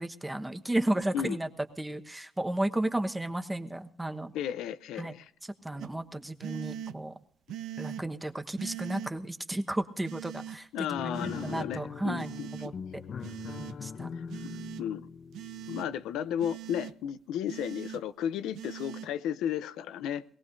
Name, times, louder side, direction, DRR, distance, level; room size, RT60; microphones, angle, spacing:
voice 1, 0.0-1.5 1.8-4.3 5.0-5.1 5.6-7.1 7.8-10.7 11.2-12.3 12.6-12.7 13.8-14.1, right 1 dB, 10° right, 7 dB, 1.1 m, -33 dB
voice 2, 4.3-5.3 10.7-12.7 14.8-15.1 15.7-20.2, left 9 dB, 90° left, 13 dB, 0.6 m, -34 dB
sound 1, 5.8-5.9 6.4-6.9 7.5-8.0 8.6-9.1 10.0-10.6 11.1-11.7 12.2-12.7 13.2-13.7 14.3-14.8 15.3-15.9 16.4-16.9 17.5-18.0 18.5-19.1, right 10 dB, 85° right, 0.5 m, -41 dB
sound 2, 10.9-16.2, left 6 dB, 50° left, 0.7 m, -41 dB
22.0 x 17.5 x 2.7 m, 0.63 s
cardioid pair, 90°, 0 cm